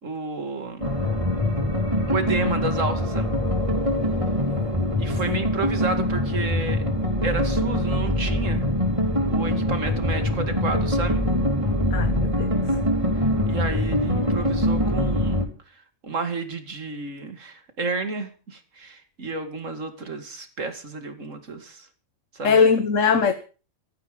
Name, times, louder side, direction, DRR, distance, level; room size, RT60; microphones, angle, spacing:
voice 1, 0.0-0.9 2.1-3.4 5.0-6.8 7.2-8.7 9.3-11.2 13.5-15.4 15.7-21.9 22.3-22.6, right 3 dB, 80° right, 8 dB, 2.6 m, -31 dB
sound 1, 0.8-15.5, left 1 dB, 25° right, 3.8 m, -23 dB
voice 2, 11.9-12.8 22.4-23.3, left 5 dB, 80° left, 10 dB, 1.5 m, -21 dB
16.0 x 14.0 x 5.3 m, 0.37 s
omnidirectional pair, 1.3 m